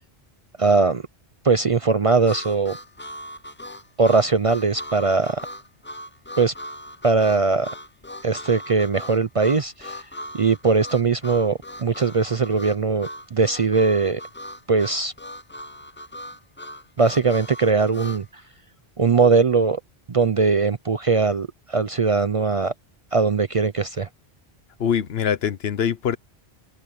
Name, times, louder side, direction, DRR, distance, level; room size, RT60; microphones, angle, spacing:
voice 1, 0.6-1.0 1.4-2.8 4.0-5.5 6.4-6.5 7.0-7.7 8.2-10.0 10.3-14.2 14.7-15.1 17.0-18.4 19.0-19.8 20.1-22.7 23.1-24.1, right 4 dB, 40° right, 0.5 m, -20 dB
Harmonica, 2.2-18.2, equal, 15° left, 0.5 m, -38 dB
voice 2, 24.8-26.2, left 8 dB, 70° left, 1.1 m, -23 dB
open air
omnidirectional pair, 1.1 m